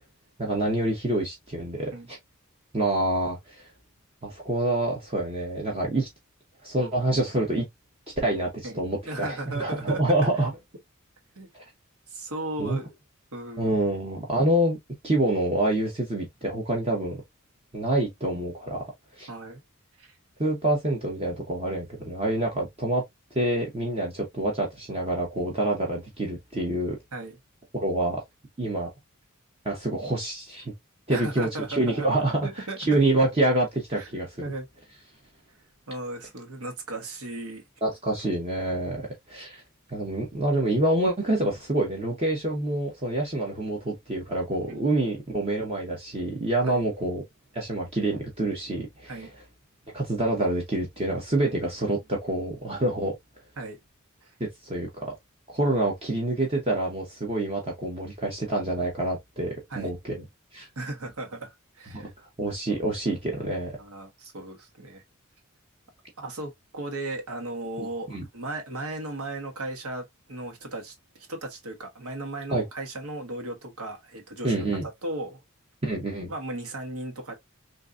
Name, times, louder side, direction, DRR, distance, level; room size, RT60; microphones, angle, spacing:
voice 1, 0.4-2.2 2.7-3.6 4.2-6.1 6.6-7.6 8.2-10.5 11.5-11.6 12.6-12.8 13.6-14.8 15.0-17.2 17.7-18.8 19.2-19.3 20.4-23.0 23.3-27.0 27.7-28.2 28.6-28.9 29.6-30.7 31.1-32.5 32.9-34.4 37.8-39.6 39.9-47.2 47.5-49.3 49.9-53.1 54.4-55.1 55.5-60.2 60.5-60.7 61.9-62.0 62.4-63.8 67.8-68.2 72.5-72.6 74.4-74.8 75.8-76.3, right 1 dB, 25° right, 0.9 m, -27 dB
voice 2, 8.6-10.3 11.4-11.5 12.1-12.9 13.3-13.8 19.3-19.6 20.0-20.1 27.1-27.4 31.1-32.1 32.4-32.8 33.9-34.1 34.4-34.7 35.9-37.6 44.7-44.9 46.6-46.8 49.1-49.3 51.4-51.6 53.6-53.8 54.2-54.3 59.7-59.9 60.8-62.1 63.8-65.0 66.2-75.4 76.3-77.3, right 2 dB, 90° right, 1.2 m, -36 dB
3.8 x 2.6 x 2.4 m
head